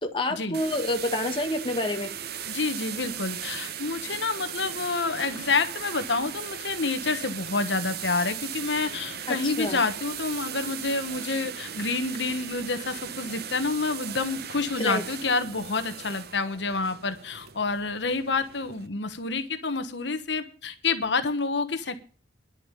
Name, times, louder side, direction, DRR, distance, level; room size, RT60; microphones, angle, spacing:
voice 1, 0.0-2.1 9.3-9.8 14.8-15.0, left 1 dB, 25° left, 4 dB, 1.8 m, -28 dB
sound 1, 0.5-18.9, right 8 dB, 55° right, 0.9 m, -38 dB
voice 2, 2.5-22.0, left 4 dB, 65° left, 9 dB, 1.3 m, -28 dB
11.0 x 7.2 x 8.9 m, 0.39 s
head